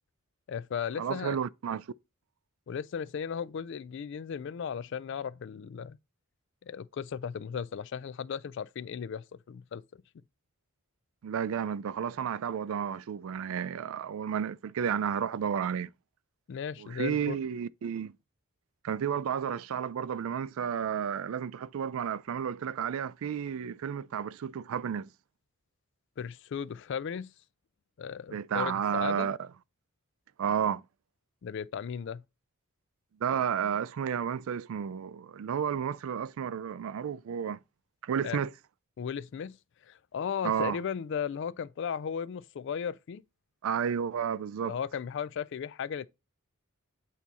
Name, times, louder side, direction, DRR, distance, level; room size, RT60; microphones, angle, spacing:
voice 1, 0.5-1.4 2.7-6.0 6.6-9.8 16.5-17.4 26.2-27.3 28.0-29.3 31.4-32.2 38.2-38.4 39.0-39.6 39.8-43.2 44.6-46.1, left 7 dB, 55° left, 0.3 m, -36 dB
voice 2, 1.0-1.8 11.2-15.9 16.8-18.1 18.8-25.1 28.3-29.5 30.4-30.8 33.2-37.6 38.0-38.5 40.4-40.8 43.6-44.8, right 8 dB, 70° right, 0.3 m, -32 dB
8.2 x 2.9 x 4.0 m
head